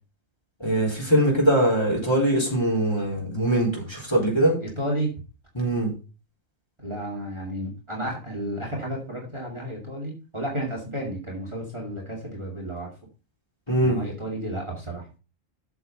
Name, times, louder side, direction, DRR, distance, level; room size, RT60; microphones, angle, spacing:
voice 1, 0.6-4.6 5.5-5.9 13.7-14.0, right 1 dB, 20° left, -2 dB, 3.9 m, -22 dB
voice 2, 4.6-5.1 6.8-12.9 13.8-15.1, right 1 dB, 20° right, -1 dB, 2.5 m, -32 dB
8.1 x 6.8 x 5.5 m, 0.34 s
omnidirectional pair, 1.3 m